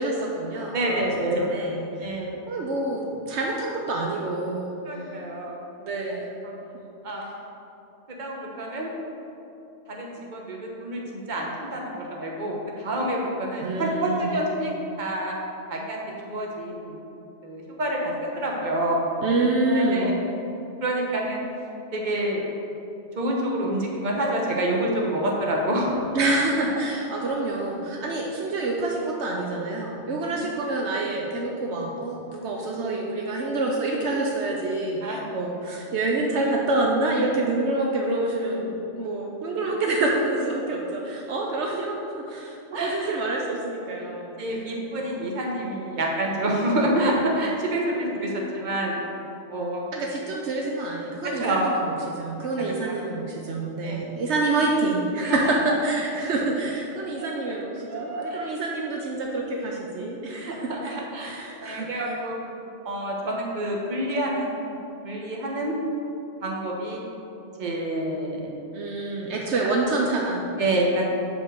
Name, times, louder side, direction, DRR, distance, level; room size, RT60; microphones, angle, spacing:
voice 1, 0.0-2.2 2.5-5.0 5.8-6.3 6.7-6.9 13.6-14.3 19.2-20.1 26.1-42.0 42.3-44.3 49.9-62.2 62.4-62.6 68.7-70.5, right 2 dB, 75° right, -1 dB, 1.0 m, -27 dB
voice 2, 0.7-1.4 2.0-2.3 4.9-5.6 7.0-7.3 8.2-8.9 9.9-14.7 15.0-15.4 15.7-17.0 17.4-19.0 19.7-20.1 20.8-21.4 21.9-22.4 23.2-26.0 30.3-30.4 35.0-35.2 42.7-43.1 44.4-48.9 49.5-49.8 51.4-51.6 52.8-53.0 53.8-54.2 55.2-55.5 57.2-57.4 57.8-58.4 60.3-62.4 62.8-64.8 65.0-65.8 66.4-67.0 67.6-68.5 70.6-71.1, right 1 dB, 45° right, -2 dB, 1.1 m, -27 dB
5.3 x 4.6 x 6.3 m, 2.9 s
omnidirectional pair, 1.2 m